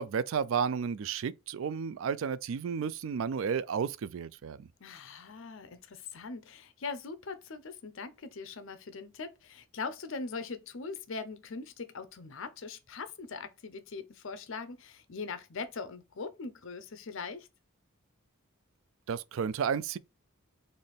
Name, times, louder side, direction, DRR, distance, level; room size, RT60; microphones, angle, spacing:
voice 1, 0.0-4.7 19.1-20.0, right 6 dB, 65° right, 0.3 m, -32 dB
voice 2, 4.8-17.5, left 4 dB, 60° left, 0.6 m, -41 dB
4.1 x 2.6 x 3.4 m
head